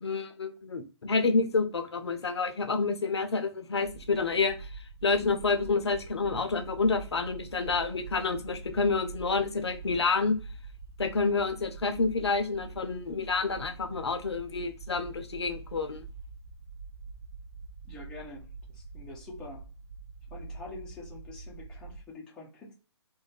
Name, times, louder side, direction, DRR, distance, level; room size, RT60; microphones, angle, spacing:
voice 1, 0.0-4.6 5.0-10.4 11.0-16.1, left 4 dB, 65° left, 7 dB, 0.5 m, -28 dB
sound 1, 3.8-22.0, right 4 dB, 50° right, 0.6 m, -45 dB
voice 2, 17.8-19.6 20.3-22.7, left 2 dB, 5° left, -4 dB, 0.4 m, -46 dB
2.4 x 2.1 x 3.1 m, 0.35 s
figure-of-eight pair, 130°, 15 cm